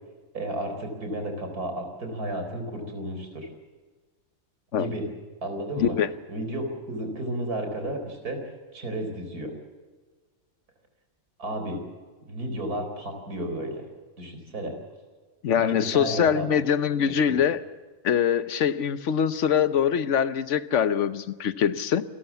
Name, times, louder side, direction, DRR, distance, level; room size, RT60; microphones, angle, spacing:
voice 1, 0.3-3.5 4.7-5.1 5.4-5.9 6.3-8.4 8.7-9.5 11.4-11.8 12.3-13.8 14.2-14.7 15.5-16.8, right 1 dB, 85° right, 5 dB, 4.7 m, -32 dB
voice 2, 5.8-6.1 15.4-17.6 18.0-22.0, left 8 dB, 55° left, 13 dB, 1.1 m, -23 dB
28.5 x 13.5 x 7.1 m, 1.4 s
omnidirectional pair, 1.6 m